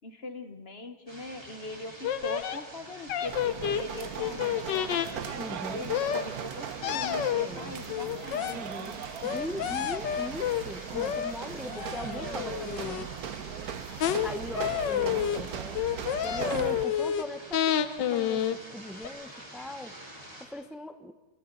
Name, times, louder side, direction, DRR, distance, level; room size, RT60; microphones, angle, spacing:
voice 1, 0.0-9.1, left 2 dB, 40° left, 8 dB, 1.3 m, -41 dB
sound 1, 1.1-20.5, right 1 dB, 20° right, 4.7 m, -47 dB
sound 2, 2.0-2.6 3.1-5.1 5.9-6.2 6.8-7.5 7.9-8.6 9.2-10.6 10.9-11.3 11.7-13.0 14.0-14.3 14.5-15.4 15.7-17.2 17.5-18.6 19.0-19.1, left 10 dB, 80° left, 1.5 m, -29 dB
sound 3, 3.3-16.8, right 9 dB, 60° right, 1.2 m, -39 dB
voice 2, 5.4-6.0 7.4-7.7 8.5-13.1 14.2-20.0 20.4-21.1, left 1 dB, ahead, 8 dB, 0.6 m, -40 dB
29.5 x 25.0 x 4.0 m, 1.1 s
omnidirectional pair, 1.9 m